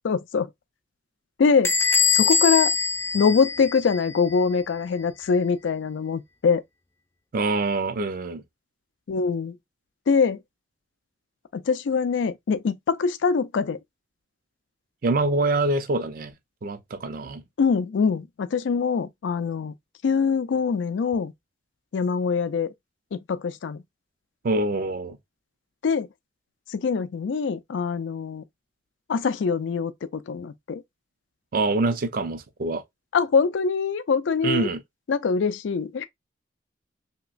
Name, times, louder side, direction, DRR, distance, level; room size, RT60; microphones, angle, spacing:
voice 1, 0.0-0.5 1.4-1.7 2.1-2.7 3.1-6.6 9.1-9.6 10.1-10.4 11.5-13.8 17.6-19.7 20.0-21.3 21.9-22.7 23.1-23.8 25.8-26.1 26.7-28.4 29.1-30.8 33.1-34.7 35.1-36.0, left 5 dB, 80° left, 0.4 m, -23 dB
Bell / Door, 1.6-4.1, left 5 dB, 15° left, 0.4 m, -23 dB
voice 2, 7.3-8.4 15.0-16.3 16.6-17.4 24.4-25.2 31.5-32.8 34.4-34.8, right 2 dB, 50° right, 0.4 m, -25 dB
3.1 x 2.9 x 2.4 m
head